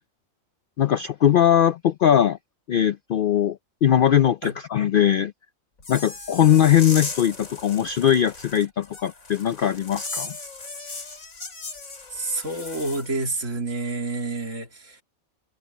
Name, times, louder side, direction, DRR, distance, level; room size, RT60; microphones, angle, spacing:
voice 1, 0.8-2.4 2.7-5.3 5.9-10.3, left 10 dB, 65° left, 0.5 m, -20 dB
sound 1, 5.8-13.1, left 3 dB, 85° left, 3.6 m, -37 dB
voice 2, 12.1-15.0, right 3 dB, 65° right, 3.0 m, -29 dB
omnidirectional pair, 1.4 m